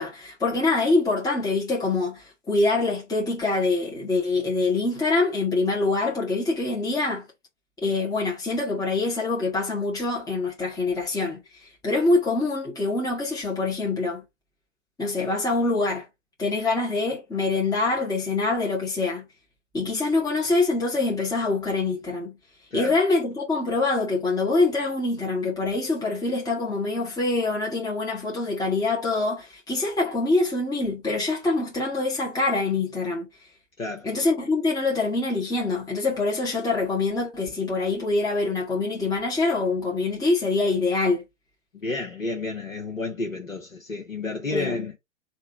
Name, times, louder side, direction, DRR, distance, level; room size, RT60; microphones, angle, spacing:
voice 1, 0.0-7.2 7.8-11.4 11.8-14.2 15.0-16.1 16.4-19.2 19.7-22.3 22.7-33.3 34.0-41.2 44.5-44.9, left 3 dB, 10° left, 1.6 m, -25 dB
voice 2, 41.7-44.9, left 3 dB, 90° left, 1.0 m, -31 dB
3.3 x 2.9 x 4.6 m
figure-of-eight pair, 105°, 38 cm